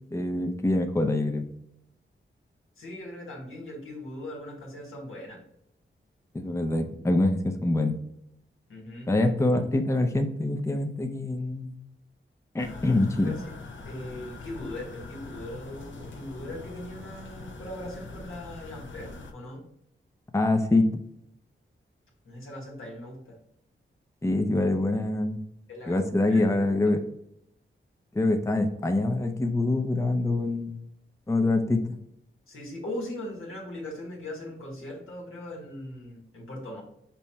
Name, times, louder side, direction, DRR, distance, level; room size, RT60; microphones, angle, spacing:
voice 1, 0.1-1.5 6.3-8.0 9.1-11.7 12.5-13.4 20.3-20.9 24.2-25.4 25.9-27.0 28.1-30.8 31.3-31.9, left 2 dB, 15° left, 6 dB, 0.5 m, -25 dB
voice 2, 2.8-5.4 8.7-9.1 13.2-13.5 13.8-19.7 22.2-23.4 25.7-26.0 26.3-26.4 32.5-36.8, left 1 dB, 80° left, -1 dB, 1.4 m, -39 dB
sound 1, 12.6-19.3, left 3 dB, 65° left, 0.7 m, -43 dB
5.5 x 2.1 x 4.3 m, 0.73 s
cardioid pair, 55°, 21 cm